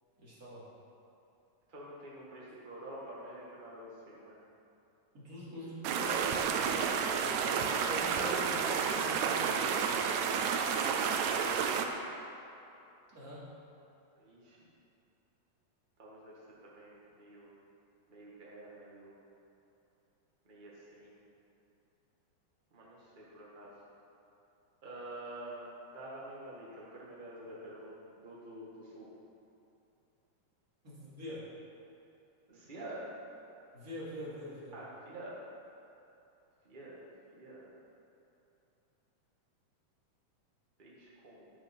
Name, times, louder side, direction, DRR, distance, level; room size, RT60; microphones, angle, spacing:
voice 1, 0.2-0.7 5.1-6.9 7.2-10.0 13.1-13.4 30.8-31.5 33.7-34.7, left 1 dB, 30° right, -8 dB, 2.6 m, -44 dB
voice 2, 1.7-4.3 14.2-14.6 16.0-17.5 18.1-19.1 20.4-21.2 22.7-23.7 24.8-29.1 32.5-33.1 34.7-35.4 36.6-37.7 40.8-41.5, right 1 dB, 55° right, -6 dB, 0.5 m, -48 dB
sound 1, 5.8-11.9, right 6 dB, 85° right, 1.6 m, -31 dB
12.0 x 6.4 x 5.9 m, 2.8 s
omnidirectional pair, 3.9 m